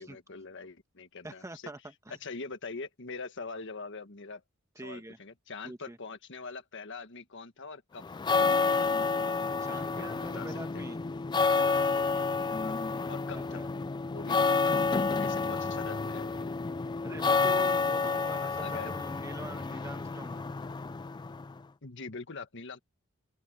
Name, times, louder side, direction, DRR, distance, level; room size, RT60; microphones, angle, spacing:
voice 1, 0.0-1.7 2.2-4.4 4.8-8.3 9.9-10.8 12.6-12.8 13.1-13.6 14.1-14.9 15.2-16.5 18.6-18.9 21.8-22.8, left 4 dB, 60° left, 1.5 m, -43 dB
voice 2, 1.2-2.2 4.7-5.2 5.6-6.0 9.6-11.0 13.3-13.7 17.0-20.4, right 1 dB, 15° right, 1.4 m, -44 dB
sound 1, 8.0-21.6, left 4 dB, 20° left, 0.3 m, -29 dB
open air
head